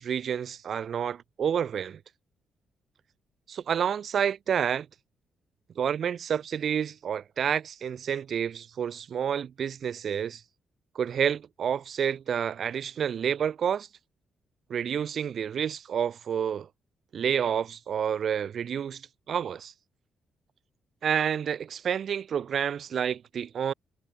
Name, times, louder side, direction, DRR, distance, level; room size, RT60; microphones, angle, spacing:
voice 1, 0.0-2.0 3.5-4.9 5.8-10.4 11.0-13.9 14.7-16.7 17.1-19.0 19.3-19.7 21.0-23.7, right 8 dB, 50° right, 2.2 m, -29 dB
cardioid pair, 145°, 0 cm